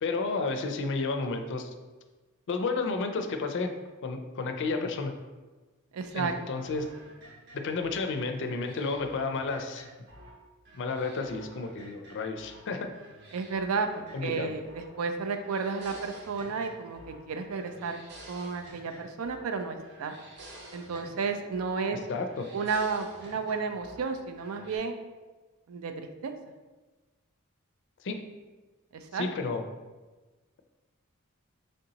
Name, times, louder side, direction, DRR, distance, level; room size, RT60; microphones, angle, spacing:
voice 1, 0.0-1.7 2.5-3.7 4.0-5.1 6.1-6.9 7.5-9.9 10.7-12.9 14.1-14.5 22.1-22.5 28.0-28.3 29.1-29.6, left 3 dB, 60° left, 6 dB, 0.4 m, -31 dB
voice 2, 5.9-6.3 13.3-18.0 18.3-20.1 20.7-22.0 22.5-25.0 25.7-26.3 28.9-29.3, right 5 dB, 85° right, 6 dB, 0.4 m, -32 dB
sound 1, 6.1-10.4 10.6-12.6 12.9-15.0 15.2-17.2 17.5-19.5 19.8-21.8 22.1-24.1 24.4-24.8, right 1 dB, 50° right, 0.7 m, -51 dB
3.4 x 2.7 x 3.9 m, 1.2 s
head